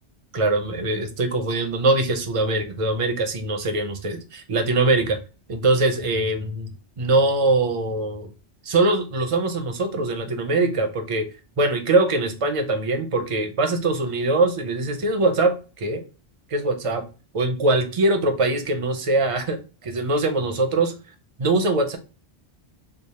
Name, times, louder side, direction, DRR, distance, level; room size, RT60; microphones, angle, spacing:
voice 1, 0.3-5.2 5.5-6.7 7.0-8.3 8.6-11.3 11.6-16.0 16.5-17.0 17.3-19.6 19.8-20.9 21.4-22.0, right 2 dB, 40° right, 6 dB, 0.5 m, -22 dB
3.3 x 2.0 x 4.1 m, 0.33 s
omnidirectional pair, 1.1 m